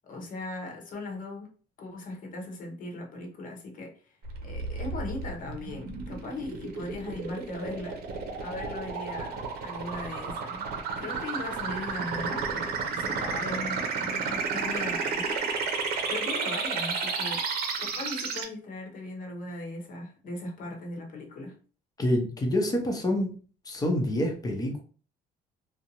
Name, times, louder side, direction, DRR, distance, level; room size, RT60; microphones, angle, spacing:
voice 1, 0.0-1.5 1.8-4.2 4.4-8.0 8.4-10.7 11.0-15.5 16.1-17.4 17.8-21.6, left 2 dB, 50° left, 1 dB, 0.9 m, -38 dB
sound 1, 4.2-18.4, right 5 dB, 70° right, 0.6 m, -32 dB
voice 2, 22.0-23.3 23.7-24.8, left 1 dB, 20° left, 2 dB, 0.8 m, -27 dB
2.5 x 2.1 x 2.9 m, 0.39 s
cardioid pair, 110°, 17 cm